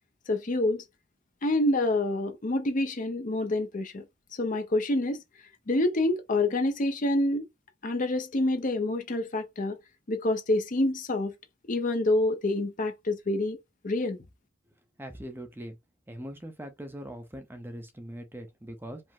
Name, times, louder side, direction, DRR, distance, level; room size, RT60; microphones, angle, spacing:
voice 1, 0.3-0.8 1.4-4.0 4.4-5.2 5.7-7.5 7.8-9.8 10.1-11.3 11.7-13.6 13.8-14.2, left 2 dB, 40° left, 0.6 m, -27 dB
voice 2, 15.0-15.8 16.1-19.0, equal, 10° right, 0.6 m, -41 dB
5.0 x 2.1 x 3.6 m
head